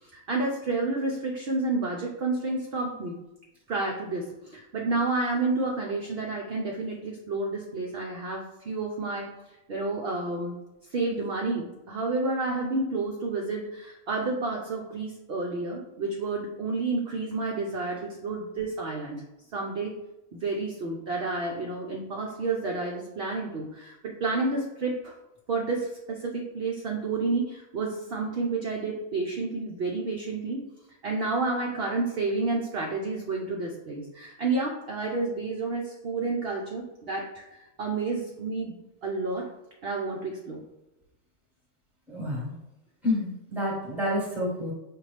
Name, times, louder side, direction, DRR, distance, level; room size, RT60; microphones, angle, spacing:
voice 1, 0.0-3.2 3.7-9.3 9.7-10.5 10.9-19.2 19.5-19.9 20.3-25.1 25.5-30.6 31.0-38.7 39.0-39.5 39.8-40.6, right 3 dB, 60° right, 0 dB, 0.6 m, -30 dB
voice 2, 42.1-42.6 43.0-44.7, left 1 dB, ahead, -4 dB, 1.1 m, -29 dB
5.1 x 2.5 x 3.2 m, 0.95 s
omnidirectional pair, 1.6 m